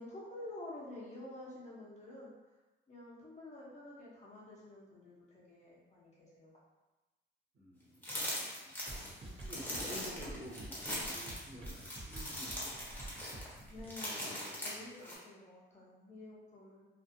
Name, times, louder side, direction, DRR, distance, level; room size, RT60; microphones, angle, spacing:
voice 1, 0.0-2.3 2.9-6.5 13.7-16.9, left 1 dB, 35° left, -6 dB, 0.9 m, -50 dB
voice 2, 7.5-8.7 9.2-13.1, equal, 80° right, -6 dB, 1.1 m, -52 dB
sound 1, 8.0-15.2, left 1 dB, 10° left, 1.0 m, -41 dB
sound 2, 8.9-13.9, right 2 dB, 30° right, 0.7 m, -48 dB
2.5 x 2.4 x 2.6 m, 1.1 s
cardioid pair, 90°, 20 cm